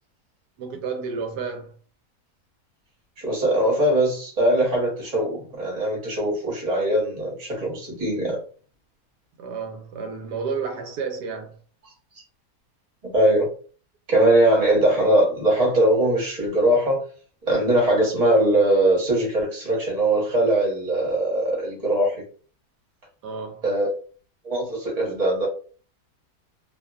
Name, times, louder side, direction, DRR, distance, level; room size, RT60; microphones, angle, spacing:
voice 1, 0.6-1.7 9.4-11.6 23.2-23.6, right 5 dB, 85° right, 1.2 m, -31 dB
voice 2, 3.2-8.4 13.1-13.5 14.1-17.0 17.5-22.1 23.6-23.9 24.4-25.5, right 1 dB, 25° right, 0.9 m, -21 dB
2.8 x 2.2 x 2.3 m
omnidirectional pair, 1.7 m